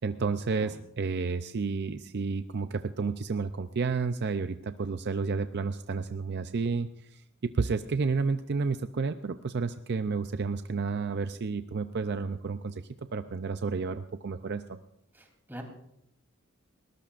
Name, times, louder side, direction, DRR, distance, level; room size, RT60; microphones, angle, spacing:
voice 1, 0.0-12.8 13.1-14.8, right 4 dB, 50° right, 9 dB, 0.5 m, -31 dB
voice 2, 15.1-15.6, equal, 10° right, 2 dB, 3.2 m, -44 dB
21.0 x 19.0 x 2.5 m, 0.74 s
head